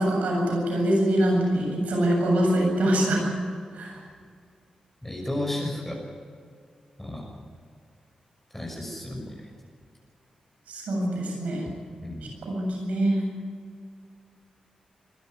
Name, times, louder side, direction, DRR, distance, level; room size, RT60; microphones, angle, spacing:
voice 1, 0.0-3.2 3.7-4.0 10.7-11.7 12.5-13.2, right 1 dB, 85° right, 0 dB, 7.7 m, -24 dB
voice 2, 5.0-6.0 7.0-7.3 8.5-9.2 12.0-12.3, left 1 dB, 10° left, -1 dB, 6.3 m, -32 dB
22.5 x 13.0 x 9.5 m, 2.1 s
cardioid pair, 60°, 2 cm